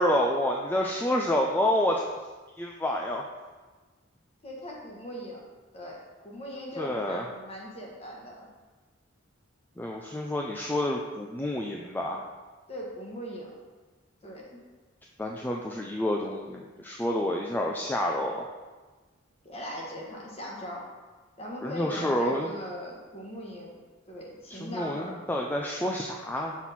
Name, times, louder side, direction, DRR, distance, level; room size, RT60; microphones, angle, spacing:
voice 1, 0.0-2.0 2.6-3.2 6.8-7.2 9.8-12.3 15.2-18.4 21.6-22.5 24.5-26.6, left 1 dB, 10° left, -1 dB, 0.4 m, -28 dB
voice 2, 4.4-5.4 5.7-8.5 12.7-13.5 14.2-14.6 19.4-20.9 21.4-23.8 24.1-25.1, equal, 30° left, -2 dB, 1.3 m, -39 dB
6.2 x 5.8 x 4.1 m, 1.3 s
head